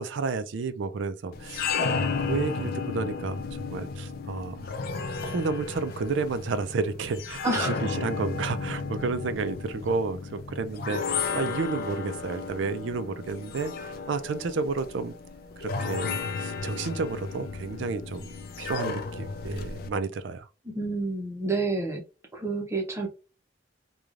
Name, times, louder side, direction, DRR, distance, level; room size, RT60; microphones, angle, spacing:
voice 1, 0.0-4.7 5.2-7.7 8.0-15.1 15.6-18.3 18.6-20.5, right 4 dB, 75° right, 0.4 m, -31 dB
sound 1, 1.3-19.9, left 5 dB, 50° left, 0.3 m, -33 dB
voice 2, 7.4-7.8 20.6-22.0 22.3-23.1, right 3 dB, 15° right, 0.6 m, -29 dB
3.1 x 2.3 x 2.5 m
head